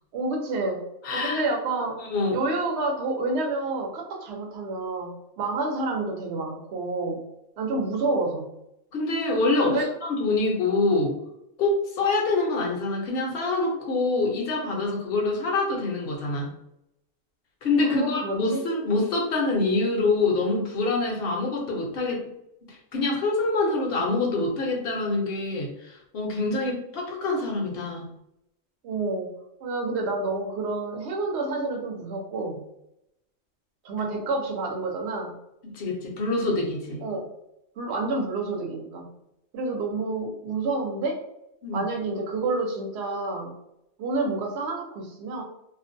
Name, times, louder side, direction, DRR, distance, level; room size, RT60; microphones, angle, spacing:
voice 1, 0.1-2.0 2.3-7.3 7.6-8.5 9.7-9.9 17.8-18.6 28.8-32.6 33.8-35.4 37.0-37.3 37.8-39.1 39.5-41.2 41.7-43.5 44.0-45.4, right 3 dB, 60° right, 2 dB, 0.8 m, -29 dB
voice 2, 1.0-1.4 2.0-2.4 8.9-11.1 11.6-16.5 17.6-22.3 22.7-28.1 35.6-37.0 41.6-41.8, left 3 dB, 55° left, 0 dB, 0.7 m, -25 dB
2.5 x 2.1 x 2.5 m, 0.82 s
omnidirectional pair, 1.4 m